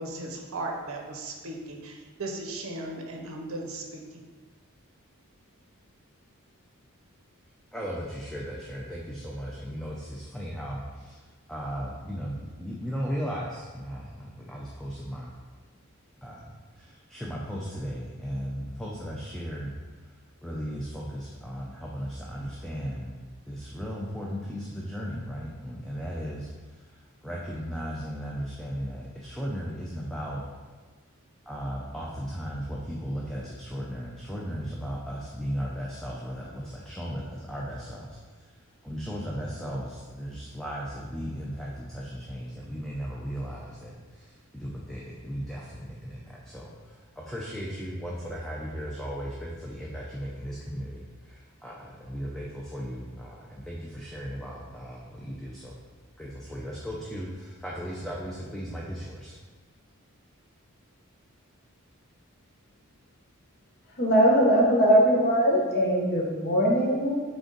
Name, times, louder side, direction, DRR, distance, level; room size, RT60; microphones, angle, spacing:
voice 1, 0.0-4.0, right 2 dB, 70° right, 1 dB, 0.6 m, -36 dB
voice 2, 7.7-15.3 16.2-20.1 20.4-26.8 27.2-30.5 31.5-38.5 38.8-55.8 56.2-59.4, equal, ahead, -4 dB, 0.3 m, -36 dB
voice 3, 64.0-67.1, equal, 50° left, -2 dB, 0.8 m, -21 dB
3.8 x 3.4 x 3.9 m, 1.4 s
head